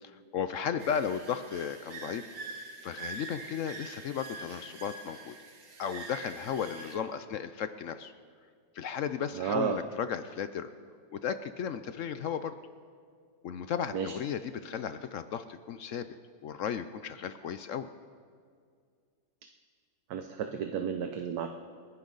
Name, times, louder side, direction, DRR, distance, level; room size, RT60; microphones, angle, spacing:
voice 1, 0.0-2.3 2.8-5.3 5.8-8.1 8.7-10.7 11.1-12.5 13.4-16.1 16.4-17.9, left 7 dB, 70° left, 11 dB, 0.7 m, -35 dB
sound 1, 0.8-7.0, right 3 dB, 90° right, 2.3 m, -45 dB
voice 2, 9.3-9.8 13.9-14.1 20.1-21.5, right 7 dB, 65° right, 5 dB, 1.2 m, -32 dB
29.0 x 11.5 x 4.0 m, 2.1 s
omnidirectional pair, 2.0 m